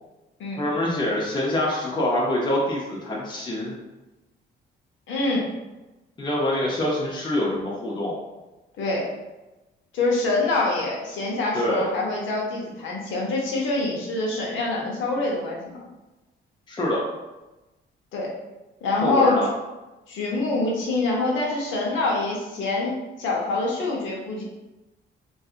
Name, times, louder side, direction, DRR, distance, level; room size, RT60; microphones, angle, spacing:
voice 1, 0.6-3.7 6.2-8.2 11.5-11.9 16.7-17.0 19.0-19.5, left 1 dB, 20° left, -4 dB, 0.6 m, -25 dB
voice 2, 5.1-5.5 8.8-9.1 9.9-15.8 18.1-18.3 18.8-19.4 20.1-24.4, left 2 dB, 75° left, -2 dB, 0.8 m, -25 dB
2.6 x 2.4 x 2.4 m, 1.1 s
cardioid pair, 90°, 20 cm